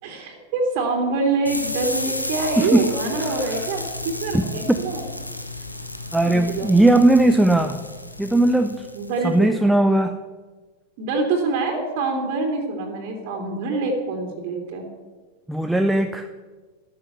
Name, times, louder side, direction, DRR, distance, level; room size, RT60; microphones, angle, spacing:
voice 1, 0.0-5.0 6.2-6.7 8.9-9.3 11.0-14.8, right 3 dB, 45° right, 2 dB, 3.1 m, -25 dB
sound 1, 1.5-9.4, left 1 dB, 85° left, 1.4 m, -32 dB
voice 2, 2.6-3.6 4.3-4.8 6.1-7.8 8.2-8.9 9.2-10.2 15.5-16.3, right 1 dB, 5° right, 6 dB, 0.8 m, -18 dB
13.5 x 13.5 x 6.9 m, 1.4 s
figure-of-eight pair, 90°, 0 cm